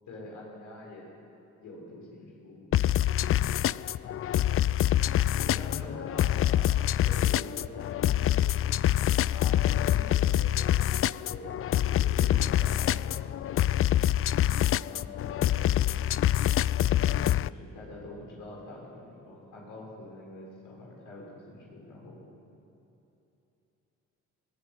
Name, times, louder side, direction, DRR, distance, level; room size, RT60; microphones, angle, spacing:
voice 1, 0.1-1.1 1.6-2.6 4.0-4.2 5.4-8.6 9.3-10.8 11.3-13.4 14.9-15.9 17.5-22.3, left 2 dB, 80° left, -3 dB, 6.7 m, -45 dB
sound 1, 2.7-17.5, left 12 dB, 45° left, 0.4 m, -26 dB
22.0 x 15.5 x 9.4 m, 2.9 s
cardioid pair, 90°, 30 cm